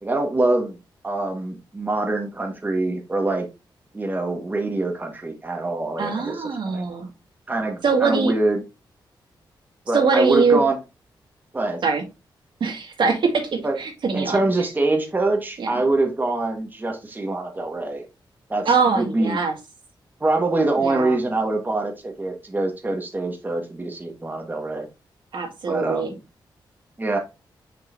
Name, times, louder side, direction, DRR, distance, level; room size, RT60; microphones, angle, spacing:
voice 1, 0.0-0.8 1.0-3.5 3.9-6.8 7.5-8.6 9.9-10.8 11.5-11.8 13.6-13.8 14.1-18.0 18.5-19.4 20.2-24.9 25.7-26.2 27.0-27.2, right 2 dB, 20° right, 1.5 m, -24 dB
voice 2, 6.0-7.1 7.8-8.3 9.9-10.6 11.8-12.0 12.6-14.4 15.6-15.7 18.7-19.5 20.8-21.2 25.3-26.1, right 5 dB, 70° right, 1.9 m, -22 dB
6.6 x 5.5 x 2.6 m
wide cardioid pair, 110°, 8 cm